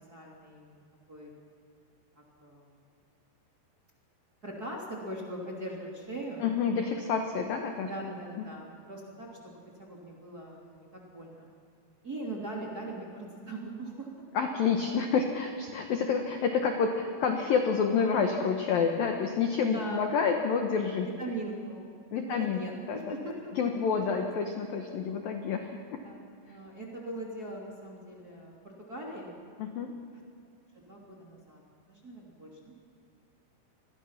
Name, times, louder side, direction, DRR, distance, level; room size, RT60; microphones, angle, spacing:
voice 1, 0.1-0.8 1.1-1.3 2.2-2.8 4.4-6.5 6.9-7.0 7.8-11.5 12.0-14.1 19.6-20.1 21.0-21.9 22.2-23.5 24.0-24.3 26.0-26.2 26.5-29.3 30.1-30.2 30.8-31.6 31.9-32.7, right 1 dB, 25° right, -3 dB, 2.5 m, -41 dB
voice 2, 6.4-8.1 14.3-21.1 22.1-22.6 22.9-23.1 23.6-26.0 29.6-29.9, left 6 dB, 70° left, 4 dB, 2.2 m, -28 dB
27.5 x 21.0 x 6.0 m, 2.4 s
omnidirectional pair, 5.8 m